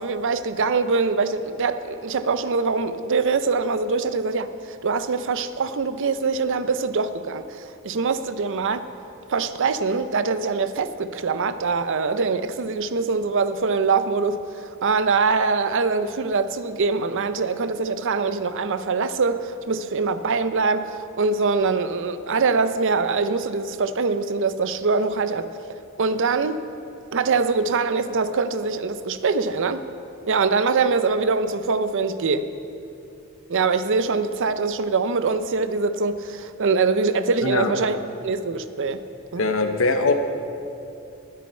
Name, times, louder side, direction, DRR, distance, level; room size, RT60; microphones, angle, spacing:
voice 1, 0.0-8.9 9.3-25.5 26.0-26.6 27.1-29.8 30.3-32.5 33.5-38.0 38.2-39.0 39.3-39.4, right 4 dB, 60° right, 11 dB, 0.6 m, -23 dB
voice 2, 37.4-37.7 39.4-40.2, left 3 dB, 65° left, 6 dB, 1.0 m, -21 dB
20.0 x 8.5 x 4.4 m, 2.7 s
head